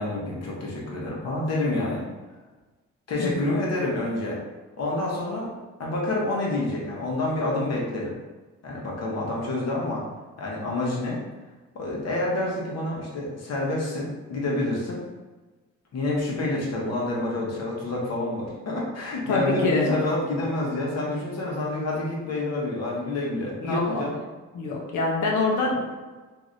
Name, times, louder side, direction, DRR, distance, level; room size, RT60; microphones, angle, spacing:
voice 1, 0.0-2.0 3.1-4.4 4.8-5.5 5.8-8.2 8.6-10.0 10.4-11.2 11.7-15.0 15.9-24.2, left 2 dB, 60° left, -3 dB, 1.0 m, -28 dB
voice 2, 19.3-19.9 23.6-24.0 24.5-26.0, left 3 dB, 75° left, 0 dB, 0.7 m, -25 dB
3.1 x 2.6 x 2.6 m, 1.3 s
cardioid pair, 90°, 30 cm